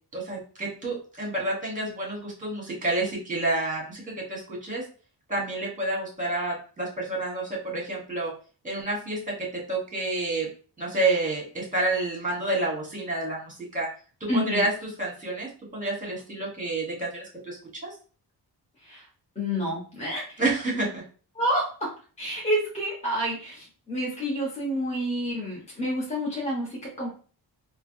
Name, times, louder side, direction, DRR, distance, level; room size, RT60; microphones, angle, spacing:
voice 1, 0.1-4.8 5.3-8.3 8.6-10.5 10.8-13.9 14.2-14.7 15.0-17.9 20.4-21.0, right 2 dB, 20° right, -2 dB, 1.0 m, -29 dB
voice 2, 14.3-14.7 18.8-19.0 19.4-20.2 21.3-21.9 22.2-27.1, equal, 15° left, -5 dB, 0.8 m, -29 dB
3.2 x 2.0 x 2.6 m, 0.39 s
wide cardioid pair, 165°, 42 cm